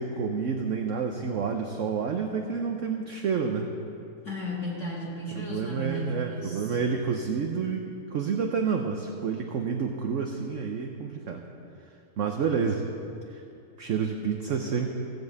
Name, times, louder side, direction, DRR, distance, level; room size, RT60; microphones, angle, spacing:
voice 1, 0.0-3.7 5.3-7.9 8.1-11.5 12.2-12.8 13.3-13.4 13.8-14.9, right 6 dB, 60° right, 3 dB, 0.9 m, -29 dB
voice 2, 4.2-6.8, equal, 45° left, -5 dB, 2.0 m, -34 dB
16.0 x 5.4 x 8.0 m, 2.6 s
omnidirectional pair, 1.8 m